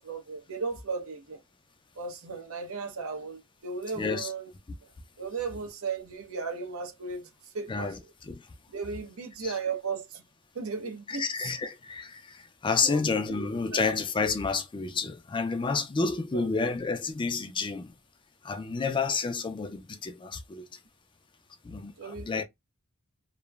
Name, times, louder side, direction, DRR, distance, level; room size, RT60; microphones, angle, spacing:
voice 1, 0.0-1.4 1.9-4.5 4.8-4.9 5.2-8.0 8.7-10.2 10.5-11.5 12.8-13.1 13.7-13.9 16.3-16.5 22.0-22.4, right 4 dB, 80° right, 0.8 m, -36 dB
voice 2, 4.0-4.3 7.7-8.5 9.4-9.5 11.1-17.9 18.4-20.8 21.6-22.4, left 4 dB, 25° left, 0.4 m, -30 dB
3.0 x 2.0 x 2.3 m
head